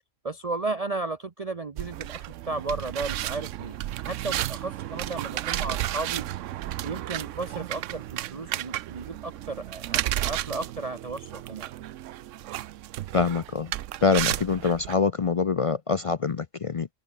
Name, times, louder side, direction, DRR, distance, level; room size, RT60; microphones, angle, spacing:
voice 1, 0.2-6.3 6.8-11.7, right 3 dB, 30° right, 0.9 m, -34 dB
sound 1, 1.8-14.9, right 14 dB, 75° right, 0.9 m, -33 dB
voice 2, 13.1-13.7 14.0-16.9, left 5 dB, 55° left, 0.3 m, -25 dB
omnidirectional pair, 1.3 m